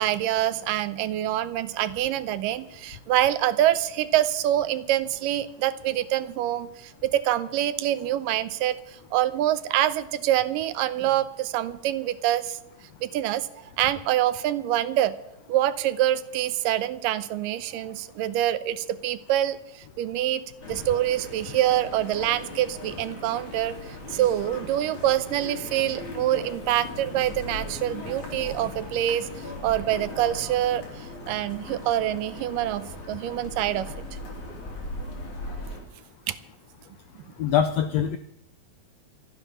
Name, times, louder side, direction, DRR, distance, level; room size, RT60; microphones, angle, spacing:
voice 1, 0.0-12.6 13.0-13.5 13.8-15.1 15.5-33.9 36.3-36.4, right 12 dB, 90° right, 14 dB, 2.4 m, -26 dB
sound 1, 20.6-35.8, left 2 dB, 60° left, 5.0 m, -39 dB
voice 2, 37.4-38.2, left 9 dB, 80° left, 10 dB, 1.4 m, -23 dB
27.5 x 9.2 x 5.6 m, 0.85 s
omnidirectional pair, 3.9 m